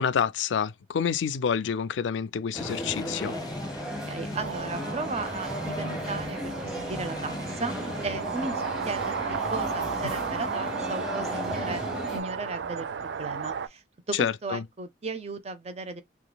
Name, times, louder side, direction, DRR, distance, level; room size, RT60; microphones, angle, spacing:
voice 1, 0.0-3.4 14.2-14.6, left 7 dB, 85° left, 0.4 m, -28 dB
sound 1, 2.5-8.2, left 1 dB, 20° left, 0.5 m, -39 dB
sound 2, 2.5-12.2, equal, 5° right, 1.1 m, -35 dB
voice 2, 4.1-11.8 12.1-16.0, right 3 dB, 35° right, 0.6 m, -36 dB
sound 3, 4.3-13.7, right 6 dB, 75° right, 0.4 m, -34 dB
3.8 x 2.9 x 2.2 m
head